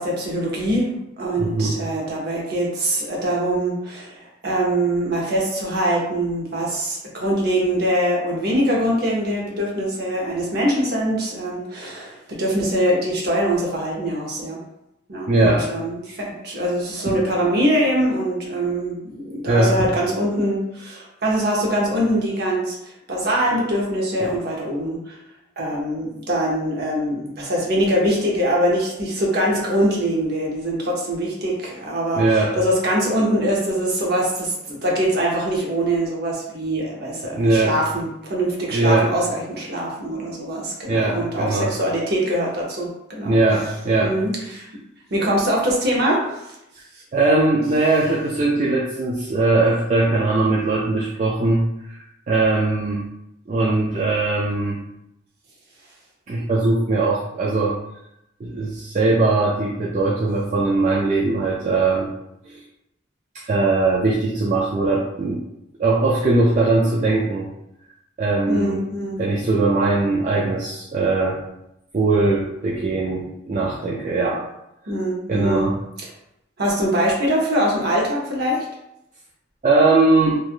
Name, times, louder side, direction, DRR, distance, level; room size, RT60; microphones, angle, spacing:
voice 1, 0.0-14.6 15.1-22.8 23.1-25.2 25.6-43.3 44.0-44.7 45.1-46.5 68.5-69.2 74.9-75.7 76.6-78.6, right 1 dB, 55° right, -2 dB, 0.7 m, -23 dB
voice 2, 1.4-1.8 15.3-15.6 17.1-17.2 19.5-19.9 24.2-24.3 32.1-32.5 37.3-37.7 38.7-39.1 40.9-41.7 43.2-44.2 47.1-53.1 53.5-54.8 56.3-57.8 58.4-62.1 62.4-62.6 63.3-65.4 65.8-67.5 68.2-68.8 69.2-71.4 71.9-74.4 75.3-75.8 79.6-80.4, right 3 dB, 40° right, -4 dB, 0.3 m, -20 dB
3.2 x 2.3 x 2.4 m, 0.84 s
head